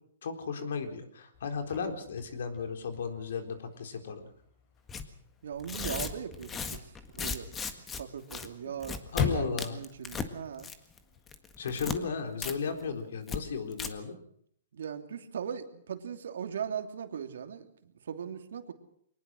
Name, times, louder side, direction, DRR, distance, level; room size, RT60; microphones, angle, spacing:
voice 1, 0.2-4.3 9.1-9.8 11.6-14.2, left 5 dB, 75° left, 6 dB, 4.0 m, -35 dB
Chirp tweet / Car / Slam, 1.3-11.3, left 6 dB, 35° left, 7.0 m, -41 dB
Tearing, 4.9-5.1 5.6-8.0 8.3-8.5 8.8-9.2 9.6-10.3 10.6-11.0 11.3-12.0 12.4-12.5 12.8-12.9 13.3-13.4 13.7-13.9, left 5 dB, 15° left, 1.7 m, -36 dB
voice 2, 5.4-7.5 8.0-9.0 9.3-10.7 14.7-18.7, right 8 dB, 75° right, 6 dB, 2.9 m, -39 dB
23.0 x 19.5 x 6.3 m, 0.67 s
hypercardioid pair, 150°, 0 cm